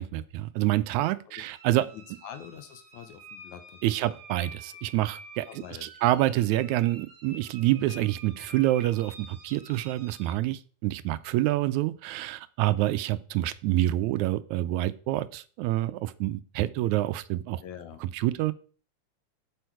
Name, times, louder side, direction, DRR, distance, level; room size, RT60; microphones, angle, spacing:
voice 1, 0.0-1.9 3.8-5.5 5.8-17.6 18.0-18.5, right 15 dB, 80° right, 14 dB, 1.9 m, -27 dB
sound 1, 1.4-10.3, right 2 dB, 40° right, 2.6 m, -49 dB
voice 2, 1.9-4.2 5.5-6.2 17.6-18.1, left 9 dB, 80° left, 8 dB, 2.4 m, -45 dB
8.0 x 7.0 x 4.6 m, 0.41 s
omnidirectional pair, 3.4 m